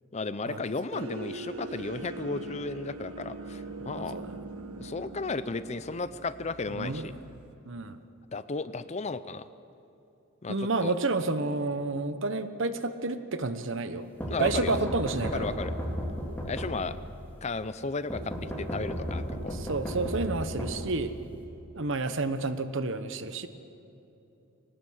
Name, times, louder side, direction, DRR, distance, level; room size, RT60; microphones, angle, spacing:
voice 1, 0.1-4.2 4.8-7.1 8.3-9.5 10.4-10.6 10.8-10.9 14.3-14.8 15.2-15.7 16.4-17.0 17.4-19.6, left 3 dB, 30° left, 14 dB, 0.5 m, -34 dB
sound 1, 0.9-7.5, right 2 dB, 85° right, 1.2 m, -42 dB
voice 2, 3.9-4.3 6.7-7.2 7.6-8.0 10.5-14.1 14.4-15.5 19.5-21.1 21.7-23.5, right 3 dB, 60° right, 10 dB, 1.1 m, -30 dB
sound 2, 14.2-17.2 18.1-21.4, equal, 10° left, 3.4 m, -34 dB
23.0 x 19.5 x 6.5 m, 2.9 s
head